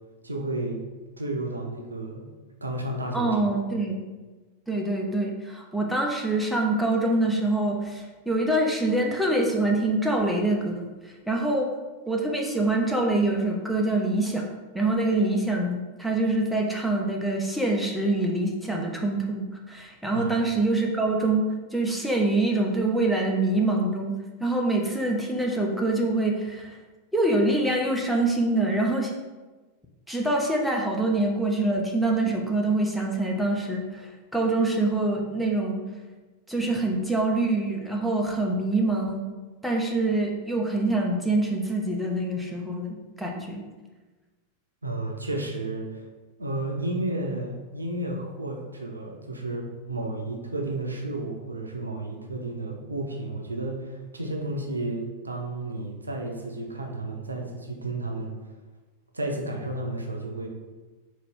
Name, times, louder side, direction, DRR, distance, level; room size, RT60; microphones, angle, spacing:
voice 1, 0.2-0.8 1.2-2.3 2.6-3.4 20.1-20.3 44.8-46.0 46.4-58.3 59.1-60.5, right 2 dB, 80° right, 1 dB, 0.5 m, -32 dB
voice 2, 3.1-4.0 4.7-11.7 12.1-14.4 14.7-21.5 21.7-24.1 24.4-26.8 27.1-29.1 30.1-35.8 36.5-39.2 39.6-43.6, right 2 dB, ahead, -1 dB, 0.6 m, -25 dB
4.0 x 2.7 x 3.5 m, 1.3 s
figure-of-eight pair, 90°, 0 cm